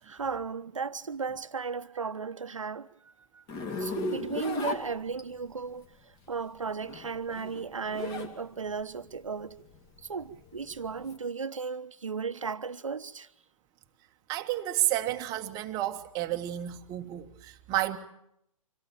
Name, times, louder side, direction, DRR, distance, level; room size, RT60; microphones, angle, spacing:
voice 1, 0.0-3.4 3.8-9.6 10.0-13.3, right 5 dB, 65° right, 1.3 m, -35 dB
Zipper (clothing), 3.5-5.5 6.7-8.3 8.7-11.2, left 3 dB, 20° left, 3.1 m, -36 dB
voice 2, 14.3-18.0, right 14 dB, 20° right, 1.6 m, -31 dB
26.5 x 18.0 x 8.9 m
figure-of-eight pair, 125°, 17 cm